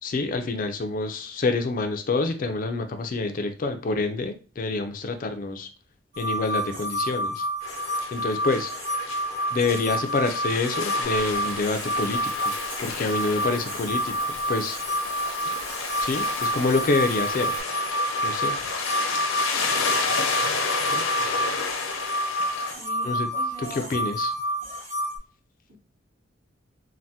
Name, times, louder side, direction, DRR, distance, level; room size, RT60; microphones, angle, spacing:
voice 1, 0.0-5.7 6.2-7.4 8.1-8.7 9.5-12.5 12.8-14.8 16.0-17.5 18.2-18.6 20.8-21.0 23.0-23.3 23.6-24.3, left 3 dB, 40° left, 7 dB, 0.4 m, -27 dB
sound 1, 6.1-25.2, equal, 40° right, 1.0 m, -29 dB
sound 2, 7.6-22.7, left 4 dB, 90° left, 0.6 m, -31 dB
Water / Bathtub (filling or washing), 11.0-17.6, right 3 dB, 85° right, 0.8 m, -41 dB
voice 2, 22.7-23.9 25.7-25.8, equal, 70° right, -2 dB, 1.2 m, -41 dB
3.4 x 2.1 x 2.7 m, 0.37 s
head